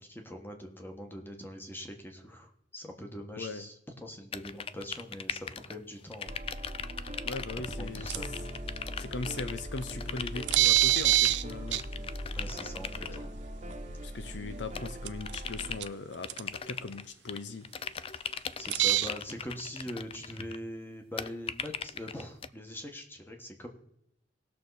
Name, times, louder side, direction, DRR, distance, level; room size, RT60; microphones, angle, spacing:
voice 1, 0.0-3.8 4.0-6.3 7.8-8.3 11.9-13.3 18.3-23.7, equal, 10° left, 4 dB, 1.5 m, -43 dB
voice 2, 3.4-3.7 7.2-8.3 9.0-11.8 13.0-13.3 14.0-17.7, left 3 dB, 75° left, 11 dB, 0.7 m, -39 dB
sound 1, 4.3-5.8 6.1-13.2 14.7-15.9 16.2-17.4 17.6-20.6 21.2-22.5, left 7 dB, 30° left, 0.4 m, -40 dB
sound 2, 6.3-15.8, equal, 40° right, 1.1 m, -40 dB
sound 3, 8.1-8.4 9.8-9.9 10.5-11.4 11.7-11.8 13.7-13.8 15.1-15.5 15.8-15.9 16.3-16.4 18.7-19.1, right 16 dB, 75° right, 0.5 m, -24 dB
18.5 x 6.6 x 4.1 m, 0.79 s
head